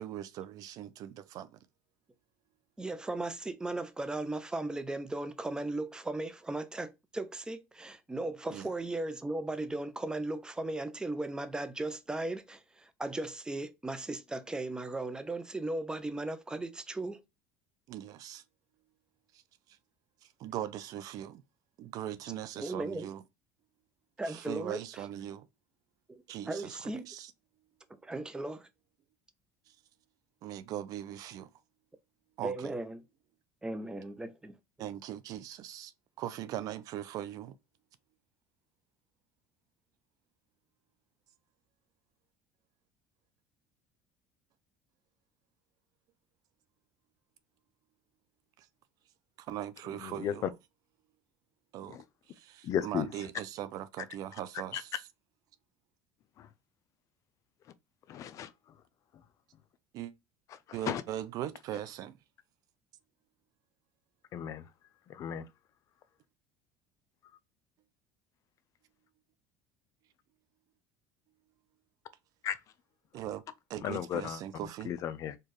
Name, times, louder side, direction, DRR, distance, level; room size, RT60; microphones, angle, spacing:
voice 1, 0.0-1.6 8.5-8.7 17.9-18.4 20.2-21.4 21.8-23.2 24.2-25.5 26.3-27.3 30.4-31.5 32.4-32.7 34.8-35.9 36.2-37.5 48.6-48.7 49.4-50.5 51.7-52.0 52.3-54.9 59.9-60.1 60.7-62.2 73.1-73.4 73.7-74.9, right 12 dB, 55° right, 0.5 m, -40 dB
voice 2, 2.8-17.2 22.6-23.1 24.2-25.0 26.1-27.1 28.0-28.7 32.4-33.0 33.6-34.9, right 2 dB, 10° right, 0.6 m, -37 dB
voice 3, 49.9-50.5 51.9-52.0 52.6-53.1 54.7-54.8 56.4-56.5 58.1-58.5 59.1-59.2 60.5-61.0 64.3-64.7 65.1-65.5 72.4-72.6 73.8-74.4 74.8-75.4, left 9 dB, 45° left, 0.4 m, -35 dB
4.4 x 2.4 x 3.2 m
supercardioid pair, 110°, 7 cm